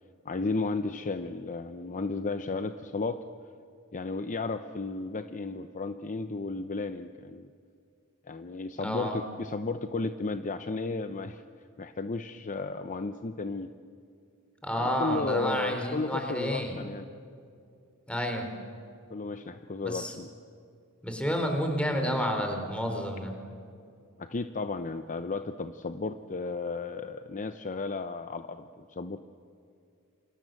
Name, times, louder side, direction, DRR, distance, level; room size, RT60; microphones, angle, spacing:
voice 1, 0.2-3.2 3.9-7.5 8.3-11.4 11.8-13.7 14.7-17.1 19.1-20.3 24.2-29.3, left 3 dB, 35° left, 9 dB, 0.7 m, -34 dB
voice 2, 8.8-9.2 14.6-16.8 18.1-18.5 19.8-20.1 21.0-23.3, equal, 5° left, 4 dB, 4.0 m, -30 dB
28.0 x 25.0 x 7.7 m, 2.4 s
head